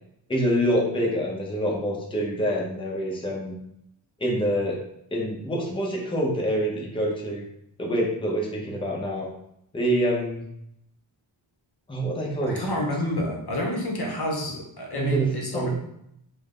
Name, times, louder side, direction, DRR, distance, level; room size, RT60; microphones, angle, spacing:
voice 1, 0.3-3.6 4.2-4.8 5.1-7.5 7.8-9.3 9.7-10.4 11.9-12.6 14.9-15.7, right 1 dB, 10° left, -3 dB, 0.7 m, -26 dB
voice 2, 12.4-15.7, left 1 dB, 50° left, 0 dB, 0.7 m, -29 dB
3.4 x 2.1 x 3.7 m, 0.75 s
wide cardioid pair, 95°, 48 cm